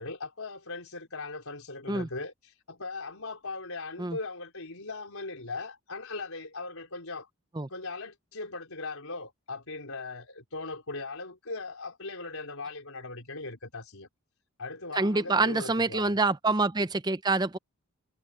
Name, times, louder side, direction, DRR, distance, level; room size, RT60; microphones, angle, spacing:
voice 1, 0.0-7.3 7.7-14.1 14.6-16.2, left 3 dB, 75° left, 4.3 m, -39 dB
voice 2, 14.9-17.6, right 3 dB, 20° right, 0.6 m, -26 dB
head